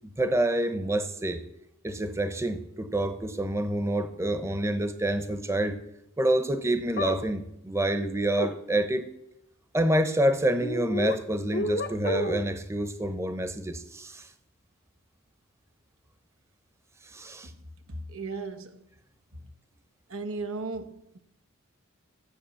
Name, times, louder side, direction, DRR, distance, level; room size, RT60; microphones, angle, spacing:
voice 1, 0.2-1.4 1.8-5.8 6.2-9.1 9.7-14.3 17.1-17.5, right 1 dB, 15° right, 0.8 m, -27 dB
sound 1, 7.0-7.2 8.4-8.5 10.6-11.2 11.5-12.5, left 2 dB, 50° left, 0.8 m, -30 dB
voice 2, 17.9-18.9 19.3-19.5 20.1-21.2, right 3 dB, 90° right, 1.1 m, -36 dB
13.0 x 8.3 x 7.0 m
head